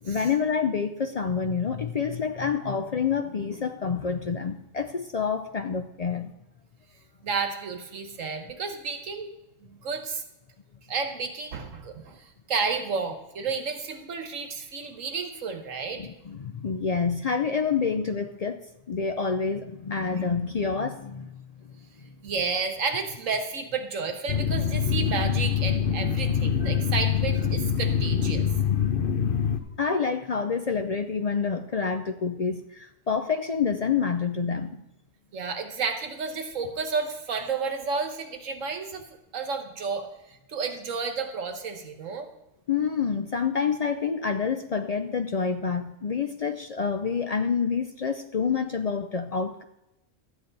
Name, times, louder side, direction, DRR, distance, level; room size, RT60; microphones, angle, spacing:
voice 1, 0.0-6.3 16.0-18.6 18.9-21.4 26.6-26.7 29.8-34.8 42.7-49.6, left 6 dB, 65° left, 6 dB, 0.3 m, -28 dB
voice 2, 7.2-9.3 9.6-10.2 10.9-16.0 22.2-28.5 35.3-39.0 39.3-42.3, right 5 dB, 75° right, 6 dB, 1.5 m, -31 dB
sound 1, 24.3-29.6, left 7 dB, 50° left, 0.8 m, -25 dB
13.0 x 8.6 x 4.0 m, 0.89 s
omnidirectional pair, 1.3 m